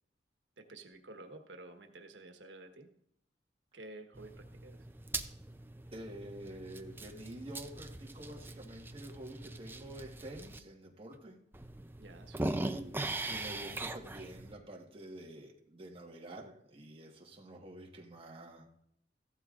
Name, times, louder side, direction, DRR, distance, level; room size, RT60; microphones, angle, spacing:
voice 1, 0.6-2.9 3.7-4.9 12.0-12.6, right 2 dB, 85° right, 5 dB, 1.3 m, -51 dB
sound 1, 4.1-10.6 11.1-11.2 11.5-14.6, right 2 dB, 10° right, 0.5 m, -41 dB
voice 2, 5.9-11.4 12.4-18.7, right 1 dB, 30° right, 1 dB, 1.4 m, -48 dB
15.0 x 12.0 x 2.5 m, 0.74 s
head